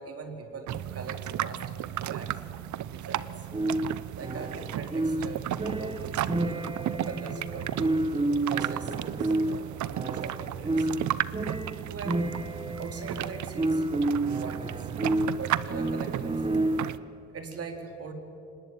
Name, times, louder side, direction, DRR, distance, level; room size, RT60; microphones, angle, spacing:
voice 1, 0.0-1.8 2.0-2.5 2.9-3.5 4.1-6.7 7.0-8.0 8.4-9.7 10.1-10.9 11.9-12.3 12.8-13.9 14.4-14.9 15.3-16.5 17.3-18.1, right 4 dB, 50° right, 4 dB, 4.2 m, -41 dB
sound 1, 0.7-17.0, right 12 dB, 70° right, 0.8 m, -34 dB
sound 2, 3.5-17.1, right 2 dB, 20° right, 1.4 m, -30 dB
25.0 x 20.0 x 9.3 m, 2.7 s
cardioid pair, 90°, 30 cm